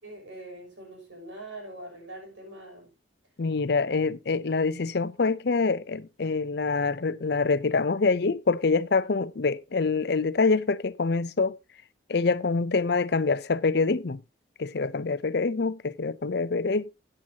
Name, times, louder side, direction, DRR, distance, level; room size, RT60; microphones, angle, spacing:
voice 1, 0.0-2.9, right 1 dB, 80° right, 6.9 m, -43 dB
voice 2, 3.4-11.6 12.1-14.2 14.6-16.9, left 4 dB, 55° left, 0.6 m, -25 dB
13.5 x 8.8 x 2.8 m
head